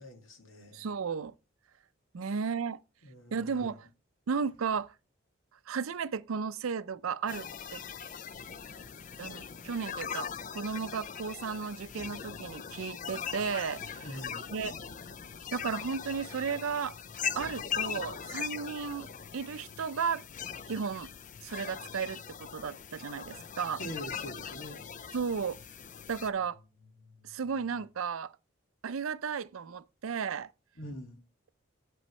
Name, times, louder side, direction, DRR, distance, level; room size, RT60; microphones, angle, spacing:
voice 1, 0.0-0.9 2.2-2.3 3.0-3.8 14.0-14.5 23.8-24.8 30.8-31.2, equal, 80° left, 2.1 m, -44 dB
voice 2, 0.7-1.3 2.1-2.8 3.3-3.9 4.3-4.9 5.7-7.8 9.2-14.1 14.5-14.7 15.5-16.9 17.4-19.1 19.3-20.2 20.7-21.1 21.4-23.8 25.1-25.6 26.1-26.6 27.2-28.3 28.8-30.5, right 6 dB, 85° right, 0.5 m, -34 dB
sound 1, 7.3-26.3, left 7 dB, 40° left, 0.4 m, -40 dB
sound 2, 12.6-27.9, left 4 dB, 65° left, 1.9 m, -59 dB
8.1 x 7.6 x 3.1 m
head